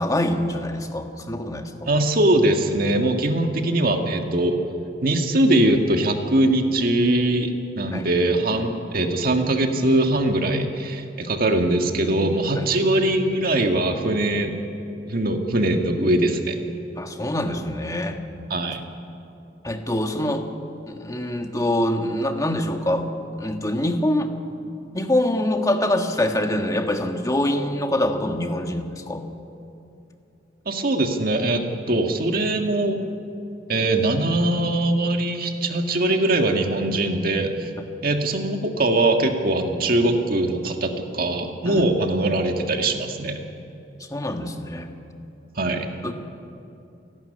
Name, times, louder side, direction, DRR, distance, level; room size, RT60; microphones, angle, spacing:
voice 1, 0.0-1.9 7.9-8.1 12.6-12.7 17.0-18.2 19.6-20.5 20.9-23.1 23.4-24.3 24.9-29.3 41.6-42.0 44.1-44.9 46.0-46.1, left 1 dB, 20° left, 5 dB, 1.6 m, -24 dB
voice 2, 1.9-4.6 5.0-14.6 15.1-16.6 18.5-18.8 30.7-33.0 33.7-37.7 38.0-43.4 45.6-45.9, right 1 dB, 55° right, 4 dB, 1.8 m, -21 dB
28.5 x 12.0 x 9.8 m, 2.7 s
head